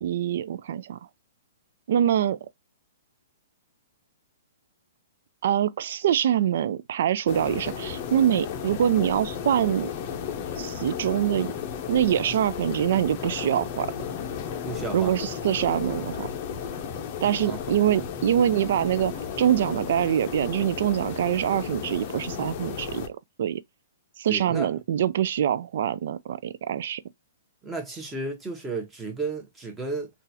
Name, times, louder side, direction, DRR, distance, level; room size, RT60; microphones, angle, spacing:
voice 1, 0.0-1.0 1.9-2.4 5.4-9.9 10.6-11.5 11.9-13.9 14.9-16.3 17.2-23.6 24.2-27.0, right 10 dB, 60° right, 0.3 m, -24 dB
sound 1, 7.3-23.1, left 7 dB, 40° left, 0.6 m, -34 dB
voice 2, 14.6-15.3 17.4-17.6 24.3-24.7 27.6-30.1, right 3 dB, 10° right, 1.0 m, -33 dB
3.8 x 2.4 x 2.7 m
hypercardioid pair, 150°, 0 cm